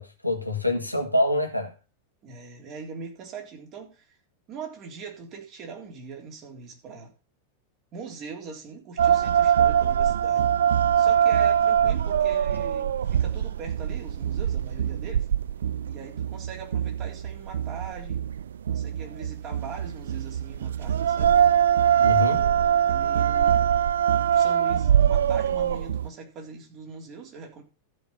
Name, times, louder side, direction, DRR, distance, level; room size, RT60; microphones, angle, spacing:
voice 1, 0.0-1.7 22.0-22.4, left 1 dB, 90° left, 1.8 m, -26 dB
voice 2, 2.2-4.2 4.5-7.1 7.9-10.5 11.0-15.3 15.8-18.2 18.7-21.4 21.9-23.6 24.3-27.6, right 5 dB, 35° right, 3.8 m, -41 dB
sound 1, 9.0-26.1, right 9 dB, 65° right, 0.8 m, -23 dB
13.5 x 5.5 x 5.6 m
figure-of-eight pair, 90°, 0 cm